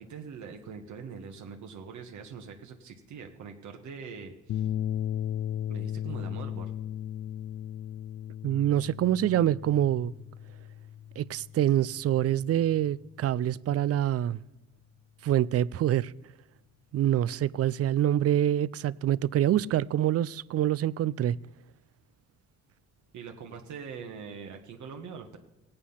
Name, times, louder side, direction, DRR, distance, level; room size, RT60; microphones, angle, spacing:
voice 1, 0.0-4.7 5.7-6.8 23.1-25.4, right 6 dB, 70° right, 1.6 m, -43 dB
sound 1, 4.5-13.0, left 10 dB, 50° left, 0.4 m, -36 dB
voice 2, 8.4-10.1 11.2-14.4 15.2-16.1 16.9-21.4, right 11 dB, 50° right, 0.4 m, -26 dB
17.0 x 8.7 x 5.7 m
cardioid pair, 90°, 30 cm